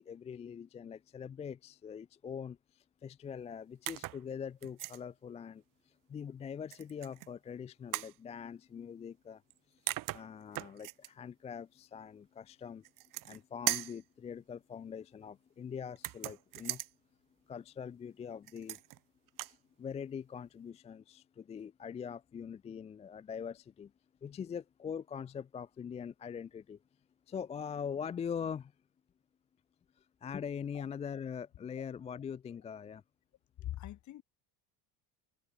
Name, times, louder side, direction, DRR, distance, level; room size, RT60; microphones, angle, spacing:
voice 1, 0.0-9.4 9.7-9.8 10.1-12.8 13.2-16.8 17.5-18.8 19.5-23.9 24.2-26.8 27.3-28.7 30.0-33.0, left 7 dB, 15° left, 0.3 m, -43 dB
sound 1, 3.9-4.2 4.6-5.0 6.7-7.3 7.9-8.2 9.5-9.6 9.9-11.1 12.8-13.4 13.7-14.0 16.0-16.9 18.5-19.0 19.3-19.6, right 16 dB, 45° right, 1.1 m, -38 dB
voice 2, 33.6-34.2, left 13 dB, 40° left, 1.4 m, -42 dB
cardioid pair, 145°, 46 cm